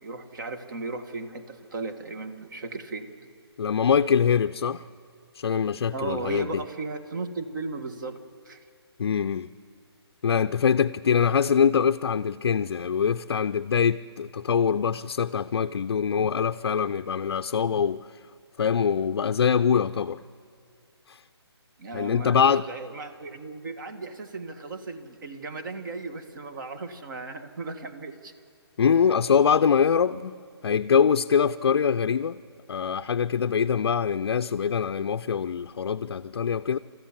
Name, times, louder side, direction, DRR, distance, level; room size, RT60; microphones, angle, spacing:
voice 1, 0.0-3.3 5.9-8.2 8.4-8.7 21.8-28.3, right 3 dB, 45° right, 1.7 m, -36 dB
voice 2, 3.6-4.8 5.3-6.6 9.0-9.5 10.2-18.1 18.6-20.2 21.1-21.2 21.9-22.6 28.8-30.4 30.6-32.4 32.7-36.8, left 7 dB, 60° left, 0.5 m, -23 dB
29.0 x 14.0 x 7.3 m
hypercardioid pair, 160°, 14 cm